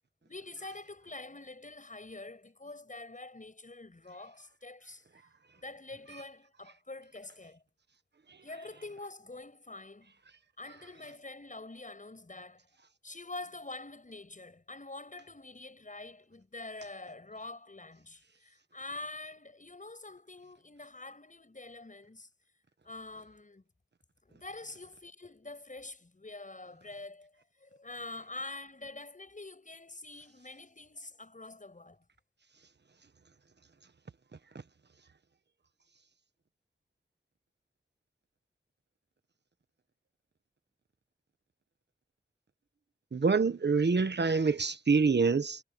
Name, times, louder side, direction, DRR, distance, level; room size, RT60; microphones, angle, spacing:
voice 1, 0.2-5.1 5.6-7.6 8.4-10.1 10.6-12.7 13.0-22.3 22.8-23.6 24.2-32.0, left 2 dB, 40° left, 7.3 m, -46 dB
voice 2, 43.1-45.6, right 4 dB, 60° right, 1.3 m, -26 dB
wide cardioid pair, 70°, 20 cm